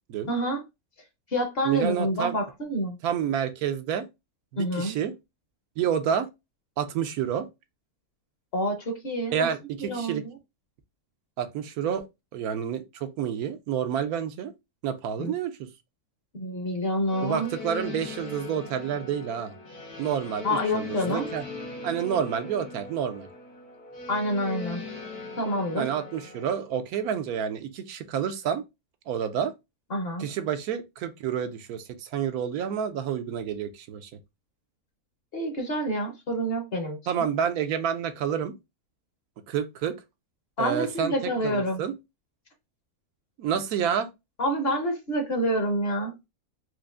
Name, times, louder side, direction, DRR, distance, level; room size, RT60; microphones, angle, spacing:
voice 1, 0.3-0.6 1.3-3.0 4.6-4.9 8.5-9.5 9.8-10.4 15.2-15.3 16.3-17.5 20.4-21.3 24.1-24.8 25.4-25.9 29.9-30.3 35.3-37.3 40.6-41.8 44.4-46.1, equal, 45° left, 1.0 m, -28 dB
voice 2, 1.7-2.4 3.0-4.1 4.5-5.1 5.8-6.3 6.8-7.5 9.3-10.2 11.4-12.0 12.3-14.5 14.8-15.5 17.2-19.5 20.0-21.4 21.8-23.3 25.7-28.6 29.1-29.5 30.2-34.1 37.1-38.5 39.5-39.9 40.6-41.1 41.4-41.9 43.4-44.1, right 8 dB, 80° right, 1.1 m, -29 dB
Space Electric Guitar Riff Chill, 17.1-26.5, left 3 dB, 90° left, 1.5 m, -39 dB
4.6 x 2.5 x 2.4 m
omnidirectional pair, 1.5 m